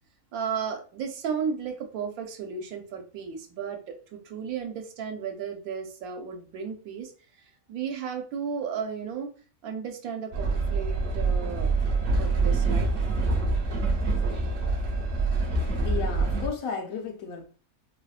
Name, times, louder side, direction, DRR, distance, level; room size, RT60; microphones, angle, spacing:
voice 1, 0.3-7.1 7.7-9.3 9.6-11.7 12.2-12.9, right 6 dB, 80° right, 1.1 m, -34 dB
Train, 10.3-16.5, right 3 dB, 55° right, 0.7 m, -25 dB
voice 2, 15.8-17.5, left 5 dB, 75° left, 1.0 m, -33 dB
3.6 x 2.1 x 2.3 m
omnidirectional pair, 1.5 m